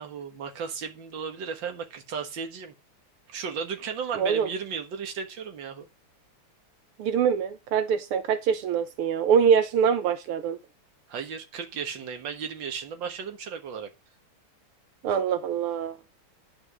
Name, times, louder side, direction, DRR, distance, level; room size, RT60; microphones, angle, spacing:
voice 1, 0.0-2.7 3.3-5.9 11.1-13.9, right 6 dB, 60° right, 2.1 m, -35 dB
voice 2, 4.2-4.5 7.0-10.6 15.0-16.0, right 7 dB, 85° right, 1.7 m, -24 dB
10.5 x 5.0 x 6.1 m
omnidirectional pair, 2.4 m